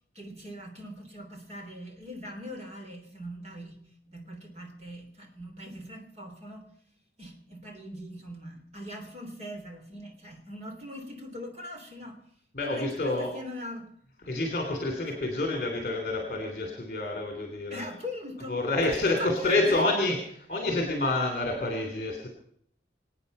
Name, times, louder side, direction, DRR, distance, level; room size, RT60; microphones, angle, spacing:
voice 1, 0.1-3.8 4.1-6.7 7.2-12.2 12.6-13.9 17.7-18.6 18.9-19.8, equal, 35° right, 4 dB, 3.2 m, -41 dB
voice 2, 12.5-13.3 14.3-17.9 18.5-22.3, left 2 dB, 40° left, 2 dB, 3.1 m, -28 dB
25.5 x 8.9 x 5.5 m, 0.68 s
head